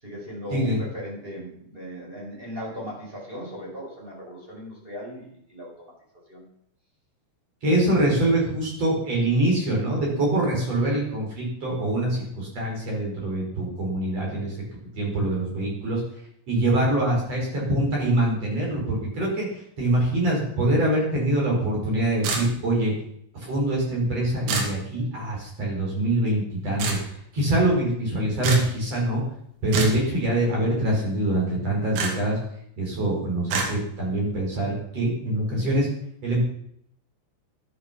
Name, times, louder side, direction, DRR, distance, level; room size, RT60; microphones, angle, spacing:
voice 1, 0.0-5.7 6.3-6.4, equal, 10° right, -4 dB, 5.1 m, -37 dB
voice 2, 7.6-14.6 15.0-16.0 16.5-23.0 23.3-29.2 29.6-32.4 32.8-35.9 36.2-36.4, right 1 dB, 30° right, -2 dB, 5.5 m, -24 dB
sound 1, 22.2-22.8 24.5-24.8 26.8-27.0 28.4-28.7 29.7-30.0 32.0-32.1 33.5-33.7, right 4 dB, 85° right, 5.0 m, -25 dB
12.0 x 10.5 x 6.1 m, 0.72 s
omnidirectional pair, 5.9 m